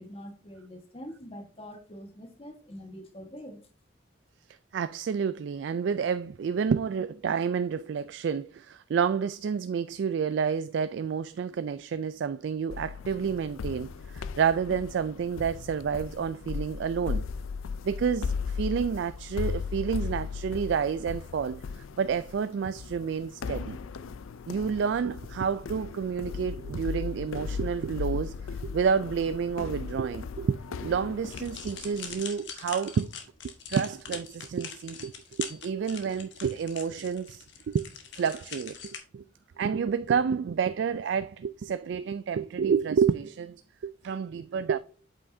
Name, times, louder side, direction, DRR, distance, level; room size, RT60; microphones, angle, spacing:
voice 1, 0.0-3.6, equal, 30° left, 1.3 m, -44 dB
voice 2, 4.7-17.2 17.8-23.8 24.5-33.1 33.7-35.1 35.4-37.9 38.1-39.2 39.6-44.8, right 6 dB, 60° right, 0.3 m, -29 dB
sound 1, 12.7-32.2, left 5 dB, 85° left, 0.4 m, -37 dB
sound 2, 31.3-39.0, left 7 dB, 65° left, 1.3 m, -42 dB
8.1 x 5.7 x 2.6 m
head